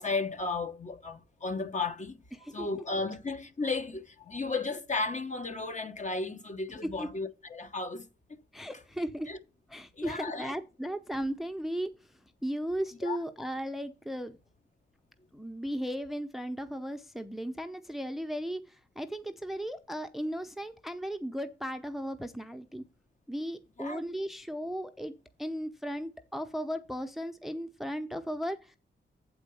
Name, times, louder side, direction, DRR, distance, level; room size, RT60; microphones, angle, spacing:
voice 1, 0.0-2.2 2.5-8.0 9.3-9.4 10.0-10.5 13.0-13.2 23.8-24.0, left 3 dB, 35° left, 1.0 m, -34 dB
voice 2, 2.3-2.7 6.8-7.1 8.5-9.3 9.7-12.1 12.4-14.4 15.3-22.8 23.3-25.1 25.4-28.8, equal, ahead, 0.7 m, -36 dB
7.7 x 4.4 x 6.9 m
cardioid pair, 65°, 20 cm